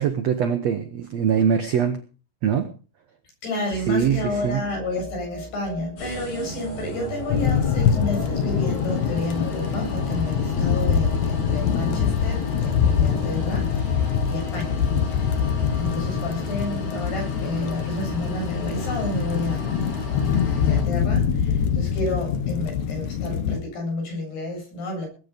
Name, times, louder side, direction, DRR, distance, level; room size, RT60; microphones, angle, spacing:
voice 1, 0.0-2.0 2.4-2.7 3.9-4.6, right 7 dB, 75° right, 9 dB, 1.5 m, -22 dB
voice 2, 3.4-15.3 15.8-19.8 20.3-25.1, left 2 dB, 80° left, 1 dB, 9.8 m, -31 dB
sound 1, 3.7-11.9, right 2 dB, 15° left, 2.3 m, -39 dB
sound 2, 6.0-20.8, equal, 50° left, 7.3 m, -35 dB
sound 3, 7.3-23.6, left 7 dB, 65° left, 1.9 m, -24 dB
20.0 x 9.6 x 5.2 m, 0.37 s
omnidirectional pair, 4.6 m